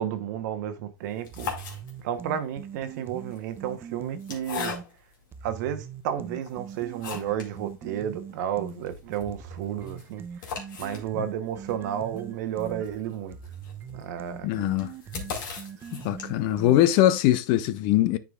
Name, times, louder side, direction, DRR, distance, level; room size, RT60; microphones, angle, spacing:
voice 1, 0.0-1.5 2.0-4.8 5.4-10.5 10.8-13.4 13.9-14.5, right 10 dB, 65° right, 1.1 m, -32 dB
sound 1, 1.1-2.3 3.2-5.2 5.8-5.9 6.4-7.6 7.9-8.0 8.2-8.3 8.7-16.6, left 6 dB, 80° left, 2.2 m, -39 dB
sound 2, 1.3-4.9 5.3-8.9 9.3-17.1, right 7 dB, 20° right, 0.5 m, -41 dB
voice 2, 14.4-14.9 15.9-18.2, left 13 dB, 50° left, 0.6 m, -22 dB
9.6 x 4.9 x 2.4 m
hypercardioid pair, 125°, 11 cm